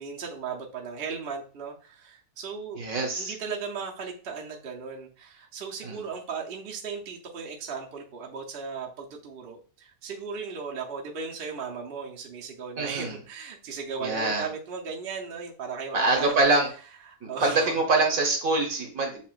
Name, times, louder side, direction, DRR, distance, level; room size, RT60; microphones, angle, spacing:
voice 1, 0.0-2.8 3.2-16.3 17.1-17.7, right 5 dB, 50° right, -1 dB, 0.8 m, -36 dB
voice 2, 2.7-3.3 5.8-6.0 12.8-13.1 14.0-14.4 15.9-16.7 17.2-19.2, right 2 dB, 70° right, 2 dB, 1.4 m, -24 dB
7.2 x 2.4 x 2.4 m, 0.39 s
omnidirectional pair, 1.5 m